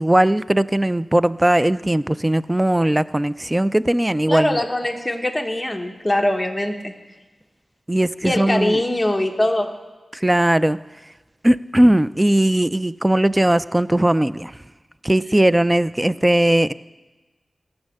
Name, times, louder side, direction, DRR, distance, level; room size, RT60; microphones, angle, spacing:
voice 1, 0.0-4.6 7.9-8.8 10.1-10.8 11.4-14.5 15.0-16.7, right 1 dB, 15° right, 16 dB, 0.4 m, -18 dB
voice 2, 4.3-6.9 8.2-9.7, left 1 dB, 15° left, 2 dB, 1.2 m, -22 dB
16.0 x 7.2 x 6.6 m, 1.2 s
wide cardioid pair, 65°, 0 cm